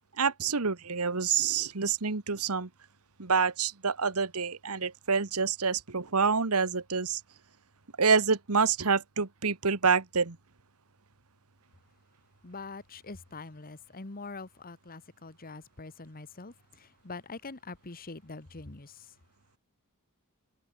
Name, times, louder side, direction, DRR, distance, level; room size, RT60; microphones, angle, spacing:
voice 1, 0.2-2.7 3.2-7.2 8.0-10.3, right 5 dB, 75° right, 1.5 m, -27 dB
voice 2, 12.4-16.5 17.0-18.9, left 3 dB, 40° left, 1.5 m, -44 dB
head